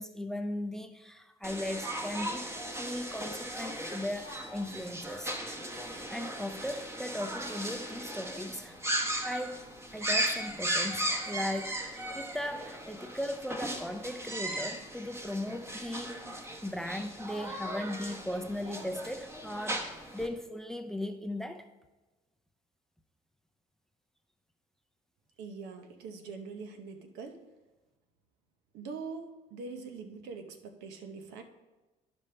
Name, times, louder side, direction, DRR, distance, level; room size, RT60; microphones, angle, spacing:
voice 1, 0.0-2.5 2.8-5.4 5.8-16.3 16.6-21.7, left 1 dB, 5° left, 0.5 m, -38 dB
sound 1, 1.4-20.3, right 1 dB, 15° right, 0.9 m, -37 dB
voice 2, 25.4-27.4 28.7-31.4, right 4 dB, 90° right, 0.8 m, -43 dB
11.0 x 5.2 x 3.3 m
cardioid pair, 110°, 17 cm